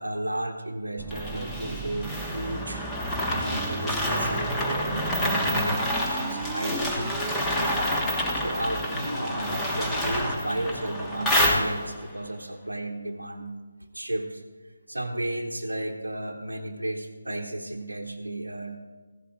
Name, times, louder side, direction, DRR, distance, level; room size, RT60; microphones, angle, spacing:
voice 1, 0.0-8.0 8.3-13.5 13.9-14.4 14.9-18.8, right 1 dB, 80° right, 2 dB, 1.0 m, -33 dB
sound 1, 1.0-7.4, right 6 dB, 10° right, 0.4 m, -38 dB
sound 2, 1.1-12.1, equal, 10° left, 1.4 m, -28 dB
15.5 x 12.5 x 3.8 m, 1.4 s
figure-of-eight pair, 150°, 0 cm